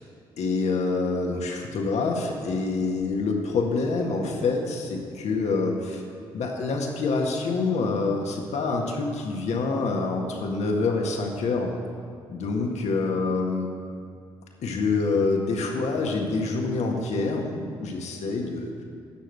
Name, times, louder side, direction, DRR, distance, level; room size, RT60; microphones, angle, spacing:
voice 1, 0.4-6.0 6.3-11.7 12.3-13.7 14.6-18.8, left 3 dB, 65° left, 1 dB, 1.7 m, -26 dB
10.5 x 6.6 x 7.8 m, 2.4 s
hypercardioid pair, 45°, 12 cm